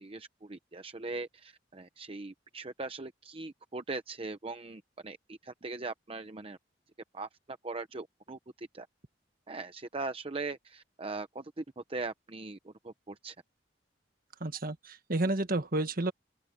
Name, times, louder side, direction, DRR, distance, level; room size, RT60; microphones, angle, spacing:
voice 1, 0.0-6.6 7.1-8.9 9.5-13.4, right 3 dB, 30° right, 0.8 m, -40 dB
voice 2, 14.4-16.1, right 2 dB, 50° right, 1.6 m, -31 dB
open air
head